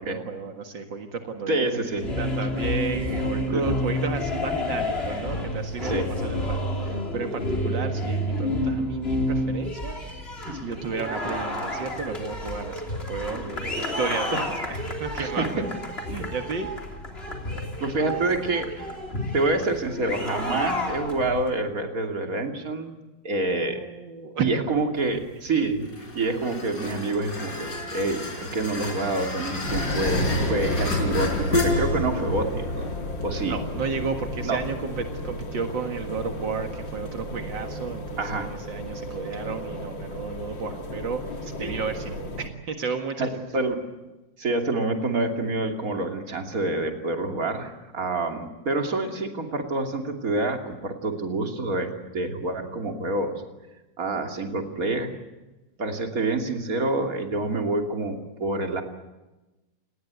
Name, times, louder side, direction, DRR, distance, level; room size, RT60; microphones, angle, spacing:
voice 1, 0.0-6.0 6.2-10.0 10.5-12.8 13.1-15.7 16.1-16.7 23.8-24.5 33.4-41.2 41.6-43.3, right 5 dB, 80° right, 5 dB, 2.5 m, -33 dB
voice 2, 1.5-2.1 3.5-3.8 5.8-6.1 10.4-10.5 14.3-14.4 15.2-15.6 17.8-18.9 19.3-22.9 23.2-23.9 24.4-32.9 33.2-33.6 34.4-34.6 38.2-38.5 41.6-41.7 43.2-43.8 44.4-53.4 54.0-55.1 55.8-58.8, right 2 dB, 50° right, 4 dB, 3.2 m, -27 dB
sound 1, 1.9-21.5, left 1 dB, 30° left, 3.7 m, -30 dB
sound 2, 25.0-38.3, left 2 dB, 60° left, 4.9 m, -33 dB
sound 3, 29.7-42.5, left 1 dB, 80° left, 2.9 m, -32 dB
29.5 x 19.5 x 8.4 m, 1.1 s
omnidirectional pair, 2.0 m